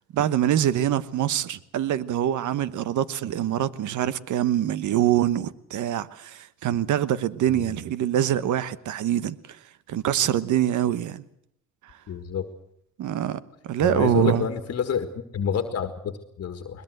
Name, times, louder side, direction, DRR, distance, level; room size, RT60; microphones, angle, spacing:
voice 1, 0.1-9.6 9.9-11.2 13.0-14.5, right 11 dB, 75° right, 1.2 m, -24 dB
voice 2, 12.1-12.5 13.8-16.8, left 7 dB, 55° left, 1.8 m, -28 dB
21.5 x 21.0 x 7.9 m
cardioid pair, 90°, 30 cm